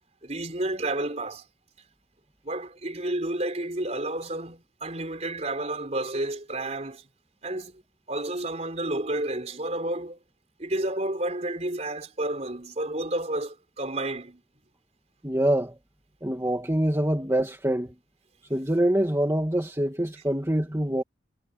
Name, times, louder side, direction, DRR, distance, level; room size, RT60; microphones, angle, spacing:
voice 1, 0.2-1.4 2.4-7.0 7.4-7.8 8.1-10.2 10.6-14.4, right 1 dB, 35° right, 4.5 m, -31 dB
voice 2, 15.2-15.7 16.2-17.9 18.5-21.0, right 1 dB, 15° right, 2.3 m, -25 dB
head